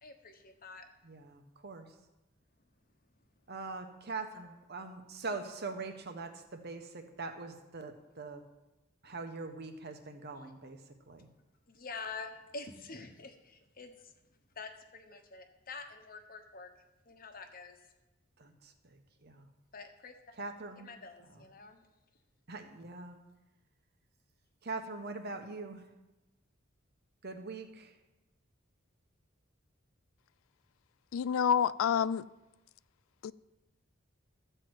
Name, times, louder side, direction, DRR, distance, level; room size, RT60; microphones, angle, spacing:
voice 1, 0.0-0.9 11.7-14.1 14.5-16.7 17.1-17.8 19.7-20.4 20.8-21.8, left 4 dB, 45° left, 1.2 m, -47 dB
voice 2, 1.0-1.9 3.5-8.5 9.0-11.3 18.4-19.5 20.4-20.9 21.3-21.4 22.5-23.2 24.6-25.9 27.2-28.0, right 3 dB, 55° right, 1.1 m, -43 dB
voice 3, 31.1-32.3 33.2-33.3, left 8 dB, 85° left, 0.3 m, -28 dB
13.5 x 4.5 x 7.7 m
head